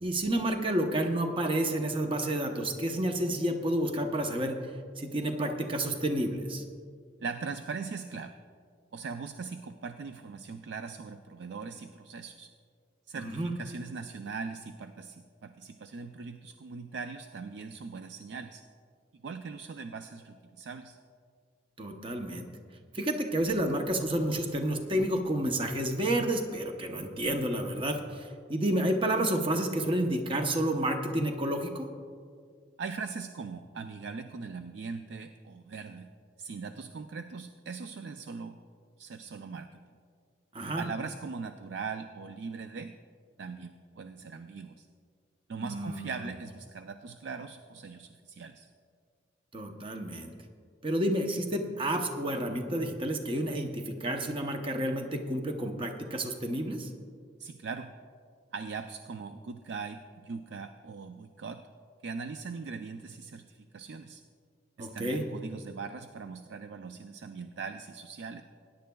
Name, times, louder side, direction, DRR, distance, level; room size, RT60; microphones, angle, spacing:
voice 1, 0.0-6.6 13.2-13.5 21.8-22.5 22.9-31.9 40.5-40.9 45.6-46.3 49.5-50.3 50.8-56.9 64.8-65.3, right 1 dB, 30° right, 4 dB, 0.8 m, -30 dB
voice 2, 7.2-8.4 8.9-12.5 13.1-18.6 19.1-21.0 32.8-36.1 36.4-38.6 39.0-39.8 40.8-42.9 43.4-44.9 45.5-48.7 57.4-57.9 58.5-61.6 62.0-64.2 64.8-68.4, right 5 dB, 65° right, 8 dB, 0.4 m, -40 dB
20.5 x 10.5 x 2.3 m, 2.1 s
head